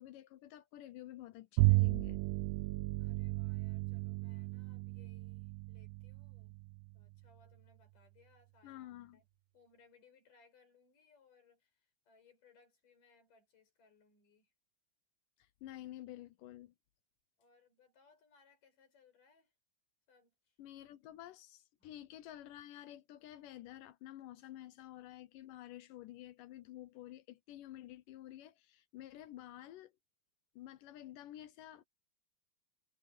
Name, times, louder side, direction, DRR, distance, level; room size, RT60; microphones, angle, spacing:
voice 1, 0.0-2.2 8.6-9.2 15.4-16.7 20.6-29.9 30.6-31.8, left 13 dB, 75° left, 2.1 m, -51 dB
Bowed string instrument, 1.6-7.2, right 22 dB, 85° right, 2.3 m, -34 dB
voice 2, 3.0-6.6 6.9-9.3 9.5-14.5 17.4-19.5 20.1-20.6 21.8-21.9, left 5 dB, 60° left, 7.7 m, -68 dB
omnidirectional pair, 4.3 m